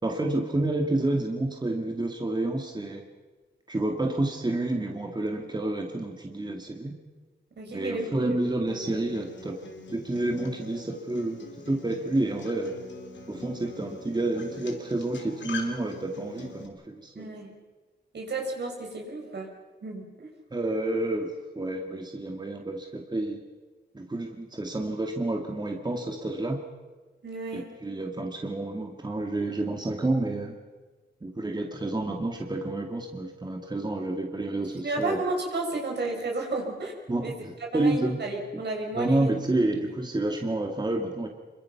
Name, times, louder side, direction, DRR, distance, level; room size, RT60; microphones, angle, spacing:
voice 1, 0.0-3.0 3.7-6.9 7.7-9.6 9.9-11.4 11.7-12.7 13.3-17.3 20.5-23.4 23.9-26.6 27.5-30.6 31.2-35.2 37.1-38.2 38.5-38.6 38.9-41.3, right 2 dB, 25° right, 3 dB, 2.3 m, -29 dB
voice 2, 7.6-8.4 17.1-17.5 18.1-19.5 19.8-20.3 27.2-27.7 34.8-36.9 37.2-37.3 37.7-39.3 39.6-39.7, right 2 dB, 65° right, 1 dB, 6.5 m, -32 dB
Acoustic guitar, 8.7-16.7, left 4 dB, 80° left, 3.4 m, -43 dB
26.5 x 23.5 x 6.0 m, 1.3 s
cardioid pair, 85°, 19 cm